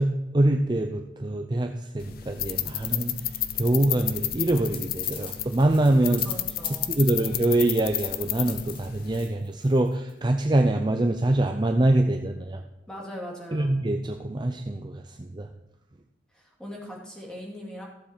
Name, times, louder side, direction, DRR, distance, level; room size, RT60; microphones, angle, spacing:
voice 1, 0.0-3.1 3.6-6.2 6.9-12.6 13.5-15.5, right 1 dB, 25° right, 4 dB, 0.5 m, -24 dB
sound 1, 2.0-9.2, left 12 dB, 50° left, 0.5 m, -32 dB
sound 2, 4.7-10.1, left 3 dB, 30° left, 1.8 m, -46 dB
voice 2, 6.2-6.9 12.9-13.7 16.3-17.9, equal, 5° left, -2 dB, 2.4 m, -40 dB
14.5 x 7.2 x 4.4 m, 0.98 s
head